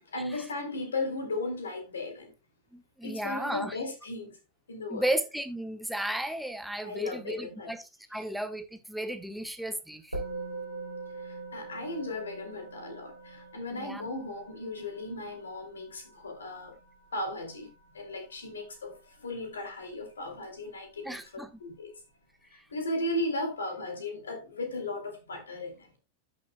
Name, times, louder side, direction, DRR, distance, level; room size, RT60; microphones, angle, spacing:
voice 1, 0.1-2.3 3.0-4.4 4.7-5.1 6.8-7.7 11.2-16.7 17.1-21.2 21.6-21.9 22.5-25.9, left 2 dB, 70° left, 2.6 m, -36 dB
voice 2, 2.7-3.7 4.9-7.8 8.1-10.2 13.7-14.1 21.0-21.5, right 1 dB, ahead, 1.2 m, -34 dB
Musical instrument, 10.1-19.6, right 3 dB, 85° right, 3.1 m, -43 dB
13.5 x 6.6 x 2.2 m
figure-of-eight pair, 90°, 0 cm